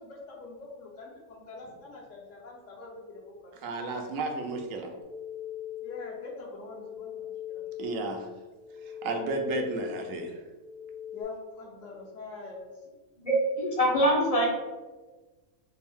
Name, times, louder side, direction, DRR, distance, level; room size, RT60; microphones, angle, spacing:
voice 1, 0.0-3.5 5.8-7.6 11.1-12.7, left 3 dB, 70° left, -3 dB, 1.2 m, -44 dB
voice 2, 3.5-4.9 7.8-8.3 8.8-10.4, right 3 dB, 85° right, 3 dB, 1.0 m, -33 dB
sound 1, 5.0-11.2, left 11 dB, 50° right, 0.6 m, -41 dB
voice 3, 13.2-14.5, right 1 dB, 40° left, -2 dB, 0.6 m, -24 dB
3.4 x 2.6 x 3.4 m, 1.2 s
omnidirectional pair, 1.3 m